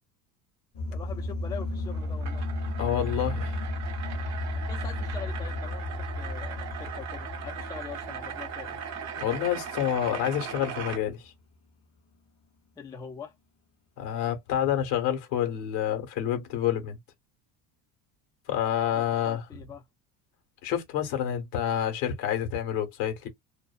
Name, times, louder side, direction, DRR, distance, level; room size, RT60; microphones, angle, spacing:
sound 1, 0.7-10.7, left 2 dB, 35° left, 0.7 m, -34 dB
voice 1, 0.9-2.5 4.6-8.8 12.8-13.3 18.9-19.8, left 7 dB, 10° left, 0.3 m, -43 dB
sound 2, 1.5-11.0, right 7 dB, 40° right, 0.7 m, -39 dB
voice 2, 2.8-3.6 9.2-11.3 14.0-17.0 18.5-19.4 20.6-23.3, left 10 dB, 85° left, 1.2 m, -28 dB
2.5 x 2.1 x 2.3 m
cardioid pair, 135°, 42 cm